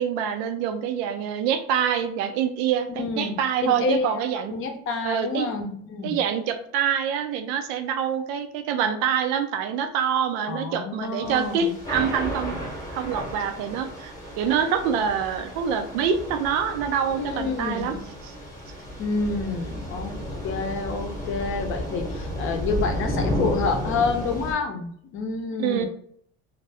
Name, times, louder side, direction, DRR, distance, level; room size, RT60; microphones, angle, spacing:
voice 1, 0.0-4.5 5.0-5.5 6.0-12.6 12.9-18.0 18.2-18.3 25.6-25.9, right 8 dB, 85° right, 9 dB, 0.5 m, -26 dB
voice 2, 2.9-4.2 4.5-6.2 10.5-11.7 17.1-18.0 19.0-20.1 20.4-25.9, left 4 dB, 40° left, 5 dB, 0.6 m, -28 dB
Thunder / Rain, 11.2-24.5, equal, 10° left, 0.9 m, -33 dB
2.6 x 2.5 x 3.3 m, 0.65 s
cardioid pair, 130°, 31 cm